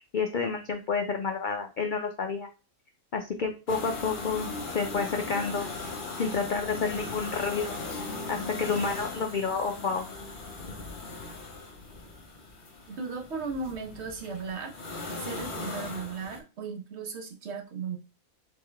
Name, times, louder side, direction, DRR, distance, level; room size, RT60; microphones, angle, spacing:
voice 1, 0.1-2.5 3.1-5.7 6.2-7.8 8.3-10.1, left 5 dB, 65° left, 4 dB, 0.4 m, -30 dB
sound 1, 3.7-16.4, left 3 dB, 40° left, 1.0 m, -38 dB
voice 2, 12.9-14.7 15.2-18.0, right 5 dB, 55° right, 1 dB, 1.0 m, -36 dB
3.8 x 3.6 x 3.3 m, 0.32 s
omnidirectional pair, 1.4 m